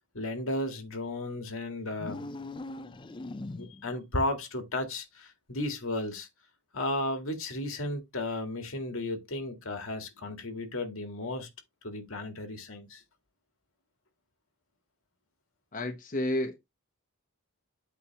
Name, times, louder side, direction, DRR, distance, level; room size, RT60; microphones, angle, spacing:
voice 1, 0.1-2.3 3.5-6.3 6.7-11.5 11.8-13.0, left 1 dB, 70° left, 1.9 m, -34 dB
sound 1, 1.9-4.0, left 2 dB, 20° left, 0.4 m, -40 dB
voice 2, 15.7-16.6, left 1 dB, 35° left, 0.9 m, -31 dB
8.2 x 3.0 x 5.8 m
head